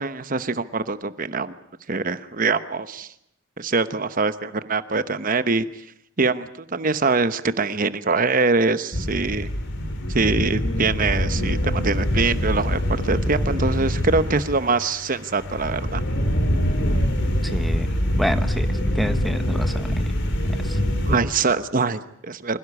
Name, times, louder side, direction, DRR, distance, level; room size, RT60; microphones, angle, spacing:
voice 1, 0.0-1.5 1.9-3.1 3.6-5.6 6.2-9.5 10.1-16.0 21.1-22.6, right 4 dB, 40° right, 12 dB, 1.0 m, -23 dB
sound 1, 8.9-21.2, equal, 55° left, 3.5 m, -24 dB
voice 2, 17.3-20.1 20.6-20.8, equal, ahead, 9 dB, 1.2 m, -29 dB
26.0 x 17.0 x 9.8 m, 0.74 s
head